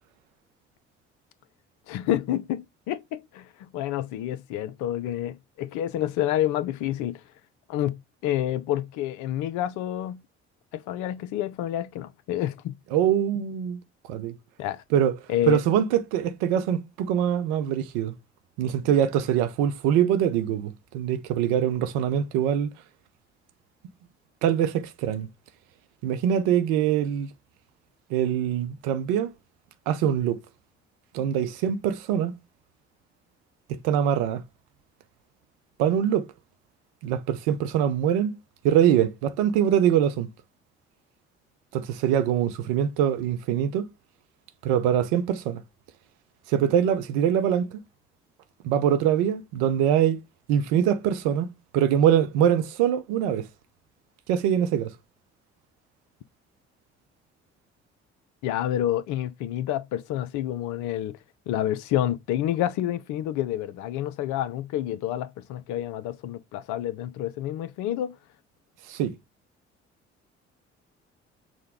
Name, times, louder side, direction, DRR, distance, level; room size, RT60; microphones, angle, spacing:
voice 1, 1.9-7.2 7.7-8.0 8.2-10.2 10.7-12.7 14.6-14.8 15.3-15.6 58.4-61.2 61.5-68.2, left 12 dB, 60° left, 0.5 m, -28 dB
voice 2, 12.9-13.8 14.1-14.4 14.9-15.2 15.5-18.2 18.6-22.7 24.4-25.3 26.0-27.3 28.1-29.3 29.9-30.4 31.1-32.3 33.7-34.4 35.8-36.3 37.0-38.3 38.6-40.3 41.7-43.9 44.6-45.6 46.5-47.8 48.6-50.2 50.5-51.5 51.7-53.5 54.3-54.9 68.9-69.2, right 9 dB, 70° right, 0.7 m, -23 dB
6.2 x 2.1 x 3.5 m
figure-of-eight pair, 45°, 33 cm